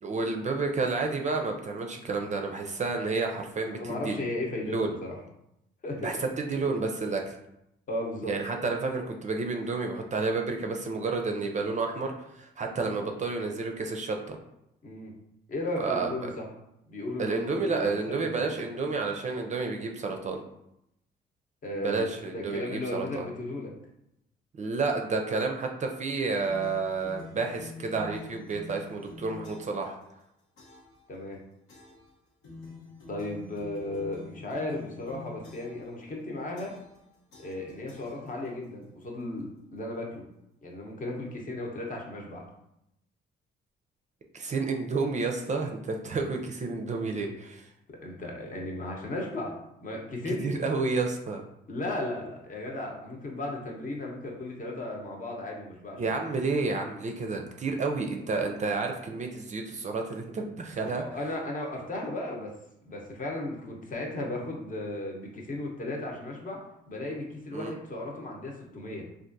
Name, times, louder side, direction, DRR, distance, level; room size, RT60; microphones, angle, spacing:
voice 1, 0.0-4.2 4.6-4.9 6.0-7.4 8.2-14.4 15.8-16.3 17.2-20.4 21.8-23.3 24.6-30.0 44.3-47.7 50.3-51.4 56.0-61.0 67.5-67.7, right 4 dB, 35° right, 3 dB, 0.4 m, -30 dB
voice 2, 3.8-5.2 5.8-6.2 7.9-8.3 14.8-15.1 15.5-16.5 16.9-18.6 21.6-23.7 31.1-31.4 33.1-36.7 37.4-40.2 40.6-42.4 47.9-49.5 49.8-50.6 51.7-56.1 60.8-62.5 62.8-66.6 66.9-69.0, left 2 dB, 40° left, 0 dB, 0.9 m, -35 dB
sound 1, 26.4-29.9 30.6-31.0 31.7-32.1 32.4-35.9 36.6-37.0 37.3-38.6, left 4 dB, 85° left, 0.9 m, -46 dB
3.4 x 2.5 x 2.6 m, 0.82 s
cardioid pair, 90°, 20 cm